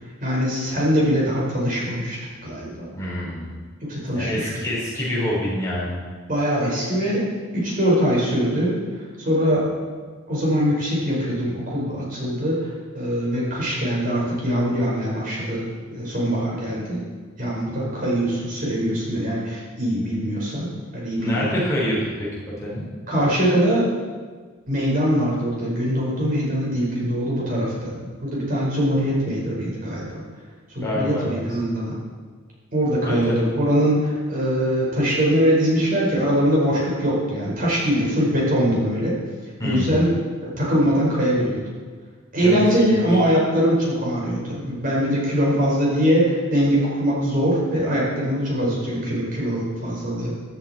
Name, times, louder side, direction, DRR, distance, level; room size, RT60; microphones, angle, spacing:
voice 1, 0.2-2.2 2.4-2.7 3.9-4.7 6.3-7.3 7.5-8.8 9.2-9.7 10.3-15.7 15.9-17.0 17.4-20.7 20.9-21.5 23.1-23.9 24.7-30.2 30.7-31.9 32.7-39.1 39.6-40.1 40.4-41.6 42.3-50.3, equal, 45° right, -5 dB, 5.2 m, -22 dB
voice 2, 3.0-3.5 4.1-6.0 21.2-22.3 22.6-22.9 30.8-31.4 33.0-33.4 39.6-40.0 42.4-43.2, equal, 15° left, -7 dB, 4.6 m, -26 dB
15.0 x 12.5 x 4.5 m, 1.5 s
head